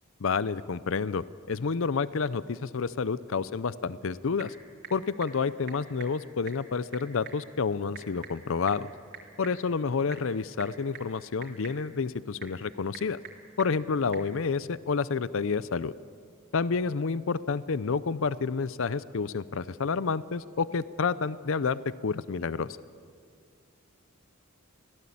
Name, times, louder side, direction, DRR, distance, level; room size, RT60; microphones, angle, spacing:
voice 1, 0.2-4.5 4.9-8.9 9.4-13.2 13.6-15.9 16.5-22.7, left 5 dB, 65° left, 17 dB, 0.6 m, -29 dB
Typing / Telephone, 3.8-14.3, right 6 dB, 50° right, 3.2 m, -49 dB
24.5 x 17.0 x 8.6 m, 2.2 s
head